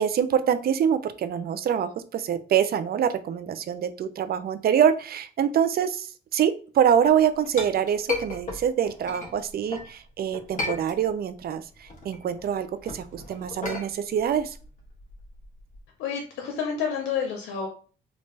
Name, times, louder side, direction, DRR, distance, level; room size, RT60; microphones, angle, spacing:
voice 1, 0.0-14.6, right 8 dB, 50° right, 12 dB, 0.5 m, -25 dB
Chink clink, 7.0-9.9 10.3-11.4 11.7-15.8, left 3 dB, 40° left, 1.2 m, -35 dB
voice 2, 16.0-17.7, left 6 dB, 90° left, 2 dB, 0.7 m, -29 dB
3.3 x 2.5 x 3.2 m, 0.39 s
cardioid pair, 90°, 20 cm